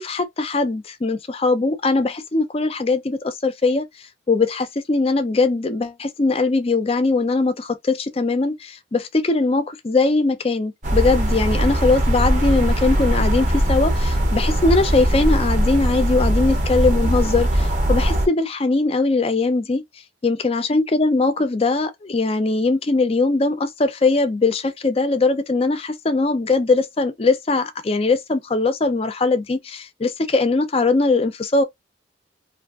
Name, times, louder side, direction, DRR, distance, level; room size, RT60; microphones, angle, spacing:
voice 1, 0.0-3.8 4.3-19.8 20.2-31.6, left 3 dB, 30° left, 0.4 m, -20 dB
sound 1, 10.8-18.3, equal, 40° right, 0.6 m, -20 dB
2.5 x 2.4 x 2.3 m
head